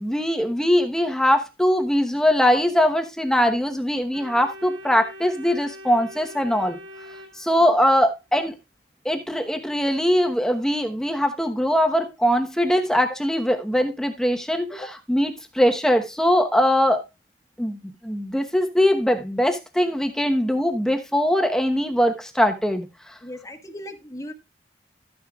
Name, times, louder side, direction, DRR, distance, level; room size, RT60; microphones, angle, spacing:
voice 1, 0.0-6.8 7.4-8.5 9.0-17.0 17.6-23.1, equal, 5° left, 1.0 m, -21 dB
Organ, 4.1-8.1, equal, 80° right, 2.1 m, -43 dB
voice 2, 23.2-24.3, left 1 dB, 20° left, 1.3 m, -37 dB
13.0 x 9.4 x 2.4 m
head